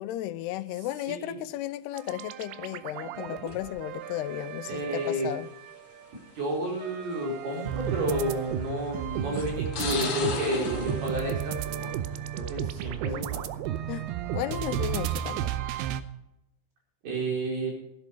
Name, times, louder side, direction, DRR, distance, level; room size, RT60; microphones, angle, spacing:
voice 1, 0.0-5.5 13.9-15.5, left 14 dB, 90° left, 2.7 m, -34 dB
sound 1, 1.9-6.0 6.5-16.0, right 11 dB, 90° right, 2.7 m, -34 dB
sound 2, 3.5-3.9 4.9-5.0 6.1-6.2 6.7-6.8 8.3-8.6 9.3-12.2 12.6-13.0, left 4 dB, 45° left, 2.2 m, -35 dB
voice 2, 4.7-5.3 6.3-11.9 12.3-13.4 17.0-17.7, right 1 dB, 75° right, 6.8 m, -31 dB
15.5 x 11.5 x 4.9 m
omnidirectional pair, 4.6 m